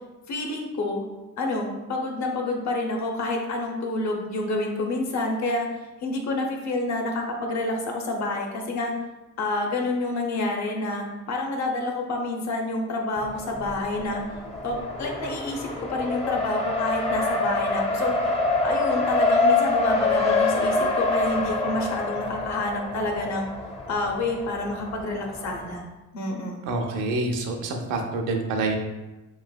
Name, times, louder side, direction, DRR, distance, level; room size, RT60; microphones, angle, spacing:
voice 1, 0.3-1.1 1.4-5.7 6.0-8.9 9.4-14.2 14.6-18.4 18.6-23.5 23.9-25.9 26.1-26.7, left 2 dB, 65° left, 1 dB, 0.7 m, -28 dB
Race car auto racing, 13.2-25.8, left 3 dB, 20° left, 0.5 m, -26 dB
voice 2, 26.6-28.8, right 3 dB, 90° right, 3 dB, 0.5 m, -27 dB
3.2 x 2.6 x 2.2 m, 1.1 s
cardioid pair, 90°, 30 cm